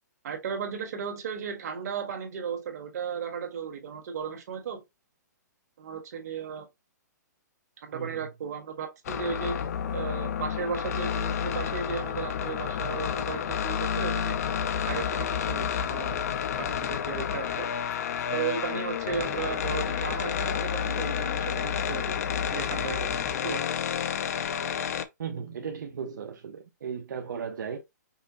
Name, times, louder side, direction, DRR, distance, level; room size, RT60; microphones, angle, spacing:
voice 1, 0.2-4.8 5.8-6.7 7.8-9.6 9.9-14.3 14.9-16.2 16.6-17.7 18.3-22.2 22.5-23.1 23.4-23.6, right 6 dB, 60° right, 1.4 m, -35 dB
voice 2, 7.9-8.3 25.2-27.8, right 6 dB, 85° right, 0.8 m, -36 dB
sound 1, 9.0-25.0, left 8 dB, 55° left, 0.6 m, -30 dB
5.5 x 2.0 x 4.1 m
hypercardioid pair, 155°, 10 cm